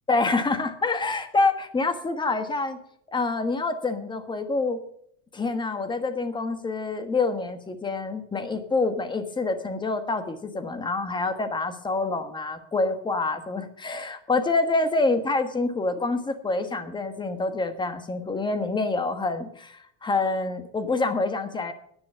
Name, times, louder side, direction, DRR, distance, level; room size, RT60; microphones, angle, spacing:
voice 1, 0.1-2.8 3.1-4.8 5.3-21.7, left 3 dB, 15° left, 9 dB, 1.4 m, -26 dB
10.5 x 10.0 x 6.7 m, 0.68 s
cardioid pair, 140°, 35 cm